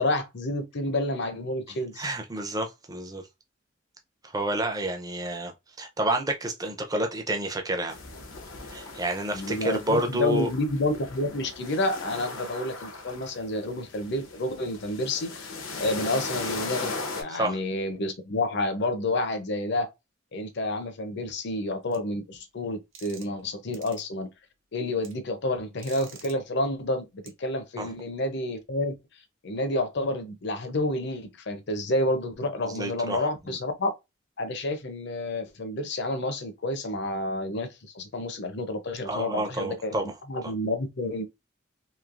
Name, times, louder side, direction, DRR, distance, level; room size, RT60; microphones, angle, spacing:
voice 1, 0.0-2.1 9.3-15.5 15.8-19.9 20.3-24.3 24.7-29.0 29.4-33.9 34.4-37.7 37.9-40.0 40.3-41.2, left 1 dB, 60° left, 0.7 m, -29 dB
voice 2, 1.7-3.2 4.2-5.5 5.8-8.0 8.7-10.5 17.3-17.6 27.8-27.9 32.6-33.2 39.1-40.1 40.4-40.5, right 1 dB, 20° right, 0.5 m, -29 dB
sound 1, 7.9-17.2, left 3 dB, 85° left, 0.9 m, -38 dB
sound 2, 21.9-22.0 22.9-23.4 23.7-24.0 25.0-25.1 25.8-26.3 27.3-27.4, right 7 dB, 70° right, 0.8 m, -47 dB
3.1 x 2.8 x 2.5 m
head